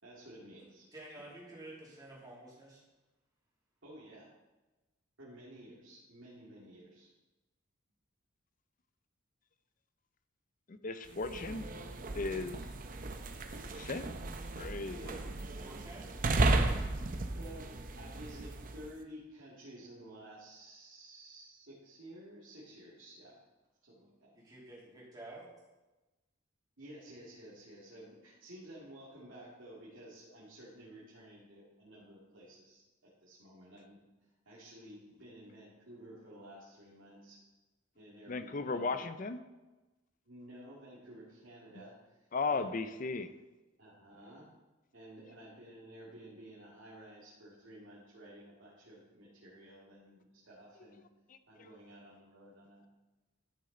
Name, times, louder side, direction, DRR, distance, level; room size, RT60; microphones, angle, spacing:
voice 1, 0.0-0.8 1.2-1.3 3.8-4.3 5.2-7.1 14.9-15.2 17.4-23.4 23.8-24.4 26.8-34.0 34.4-37.4 38.0-39.1 40.3-42.7 43.8-44.5 44.9-51.0 51.5-52.9, right 1 dB, 70° right, -7 dB, 2.3 m, -53 dB
voice 2, 0.9-2.8 15.0-15.3 15.6-16.2 24.3-25.5, right 1 dB, 20° right, -5 dB, 2.7 m, -50 dB
voice 3, 10.7-11.6 12.1-12.6 13.7-14.1 14.6-15.1 38.3-39.4 42.3-43.3 51.6-51.7, left 3 dB, 40° left, 11 dB, 0.5 m, -36 dB
sound 1, 11.1-18.9, right 2 dB, 40° right, 0.7 m, -35 dB
12.5 x 6.4 x 3.9 m, 1.1 s
head